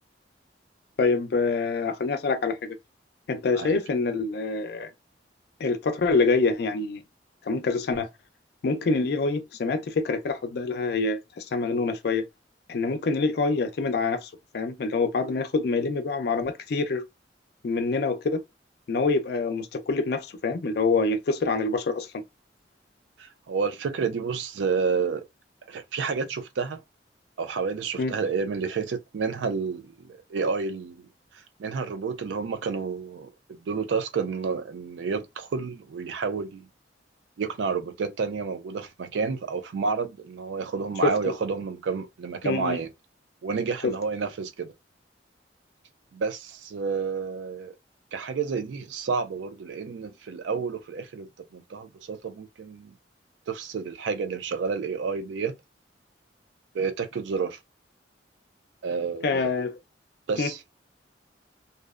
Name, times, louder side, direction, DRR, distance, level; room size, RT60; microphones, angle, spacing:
voice 1, 1.0-2.8 3.3-4.9 5.6-7.0 7.4-8.1 8.6-12.2 12.7-17.0 17.6-18.4 18.9-22.1 28.0-28.2 41.0-41.3 42.4-42.8 43.8-43.9 59.2-59.8 60.4-60.5, left 3 dB, 60° left, 0.4 m, -26 dB
voice 2, 23.2-25.2 25.7-26.8 27.4-31.1 31.6-36.7 37.4-42.9 43.4-44.7 46.1-47.7 48.1-51.3 51.5-52.9 53.5-55.5 56.7-57.6 58.8-59.5 60.3-60.6, right 5 dB, 85° right, 0.4 m, -30 dB
2.6 x 2.0 x 2.3 m
head